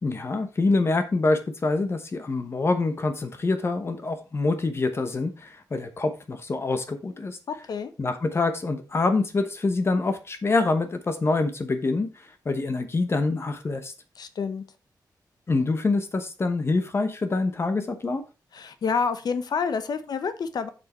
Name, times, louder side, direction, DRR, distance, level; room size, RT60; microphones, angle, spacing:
voice 1, 0.0-7.4 8.0-13.9 15.5-18.2, left 3 dB, 35° left, 9 dB, 1.1 m, -26 dB
voice 2, 14.2-14.6 18.5-20.7, left 5 dB, 65° left, 11 dB, 0.9 m, -28 dB
7.5 x 6.3 x 4.3 m, 0.31 s
wide cardioid pair, 150°, 7 cm